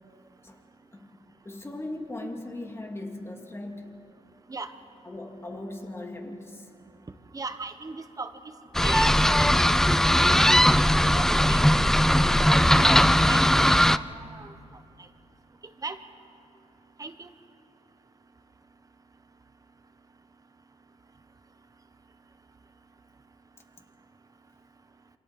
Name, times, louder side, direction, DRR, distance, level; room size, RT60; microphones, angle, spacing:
voice 1, 1.4-4.0 5.0-6.7, left 1 dB, 20° left, 3 dB, 2.5 m, -38 dB
voice 2, 7.3-8.3 8.8-9.6 9.9-10.3 10.7-11.6 12.3-14.5 15.8-16.0 17.0-17.3, right 3 dB, 30° right, 9 dB, 1.3 m, -38 dB
sound 1, 8.7-14.0, left 1 dB, 5° left, 0.4 m, -19 dB
27.5 x 24.5 x 4.4 m, 2.8 s
cardioid pair, 80°, 12 cm